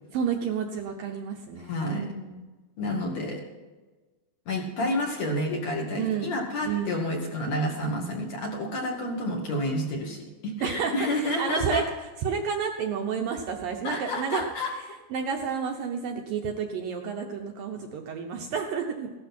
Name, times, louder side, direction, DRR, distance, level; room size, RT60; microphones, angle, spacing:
voice 1, 0.1-2.4 6.0-6.4 6.6-7.0 10.6-14.4 15.1-19.1, right 6 dB, 70° right, 3 dB, 2.3 m, -30 dB
voice 2, 1.7-2.0 2.8-3.4 4.5-11.8 13.8-14.7, left 1 dB, 45° left, -1 dB, 3.0 m, -29 dB
16.5 x 12.5 x 4.4 m, 1.2 s
omnidirectional pair, 4.8 m